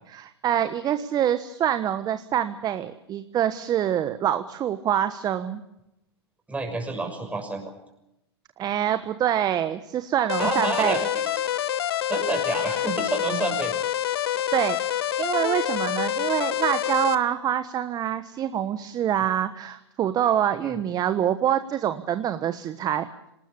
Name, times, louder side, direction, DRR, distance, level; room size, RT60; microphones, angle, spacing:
voice 1, 0.1-5.6 8.6-11.0 14.5-23.1, right 10 dB, 30° right, 11 dB, 1.3 m, -25 dB
voice 2, 6.5-7.7 10.4-11.4 12.1-13.8 20.6-20.7, right 3 dB, 10° right, 4 dB, 6.4 m, -29 dB
sound 1, 10.3-17.2, left 11 dB, 65° left, 1.6 m, -27 dB
26.0 x 20.0 x 7.0 m, 0.86 s
hypercardioid pair, 100°, 14 cm